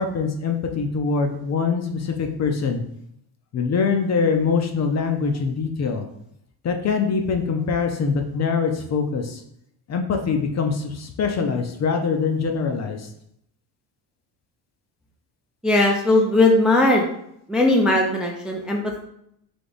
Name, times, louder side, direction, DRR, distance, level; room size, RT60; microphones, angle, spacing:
voice 1, 0.0-2.8 3.5-6.1 6.6-9.4 9.9-13.1, left 5 dB, 40° left, 4 dB, 0.6 m, -23 dB
voice 2, 15.6-17.1 17.5-19.0, left 2 dB, ahead, -1 dB, 0.4 m, -18 dB
3.5 x 3.3 x 3.9 m, 0.73 s
cardioid pair, 125°, 42 cm